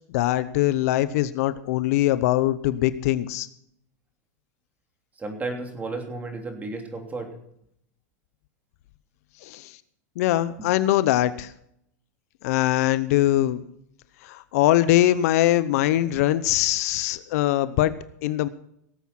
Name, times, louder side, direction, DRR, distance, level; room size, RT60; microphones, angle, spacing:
voice 1, 0.1-3.5 9.4-9.7 10.2-11.5 12.4-13.6 14.2-17.9 18.2-18.5, left 14 dB, 65° left, 15 dB, 0.8 m, -22 dB
voice 2, 5.2-7.3 10.6-10.7, right 3 dB, 15° right, 4 dB, 3.2 m, -33 dB
18.0 x 8.3 x 5.9 m, 0.73 s
hypercardioid pair, 125°, 9 cm